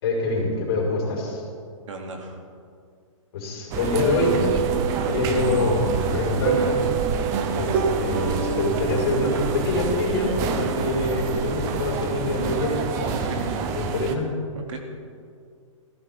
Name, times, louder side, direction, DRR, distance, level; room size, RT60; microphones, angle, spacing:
voice 1, 0.0-1.4 3.3-4.5 5.0-6.8 7.5-13.4 13.7-14.3, left 2 dB, 45° left, -2 dB, 5.0 m, -25 dB
voice 2, 1.9-2.4 13.0-13.6 14.5-14.8, right 3 dB, 65° right, 1 dB, 2.8 m, -35 dB
sound 1, 3.7-14.2, right 5 dB, 20° right, 0.7 m, -28 dB
sound 2, 4.2-9.5, right 6 dB, 40° right, 1.6 m, -27 dB
20.5 x 15.5 x 3.7 m, 2.2 s
hypercardioid pair, 170°, 17 cm